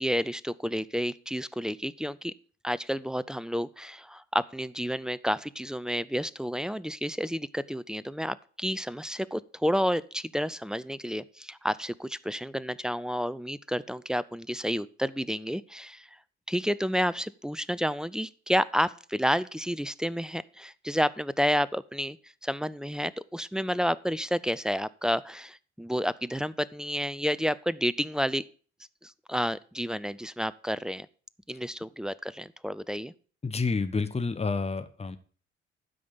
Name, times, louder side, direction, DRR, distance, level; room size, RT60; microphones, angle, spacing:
voice 1, 0.0-2.3 2.6-16.1 16.5-22.2 22.4-28.4 29.0-31.1 31.5-33.1, equal, ahead, 18 dB, 0.5 m, -30 dB
voice 2, 33.4-35.2, left 4 dB, 20° left, 11 dB, 1.1 m, -29 dB
12.0 x 5.1 x 6.8 m, 0.41 s
figure-of-eight pair, 45°, 32 cm